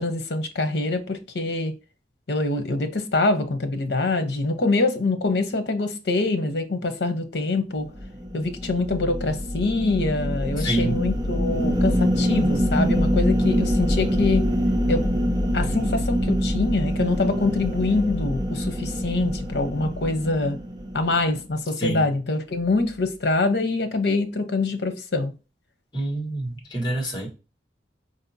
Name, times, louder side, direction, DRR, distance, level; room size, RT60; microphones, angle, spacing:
voice 1, 0.0-1.7 2.3-7.9 8.3-14.5 14.9-15.1 15.5-20.6 20.9-25.3, left 3 dB, 75° left, 0.7 m, -24 dB
sound 1, 7.9-21.4, equal, 20° right, 0.8 m, -25 dB
voice 2, 10.6-11.0 21.8-22.1 25.9-27.3, right 1 dB, 25° left, 1.3 m, -27 dB
5.1 x 2.8 x 2.6 m
head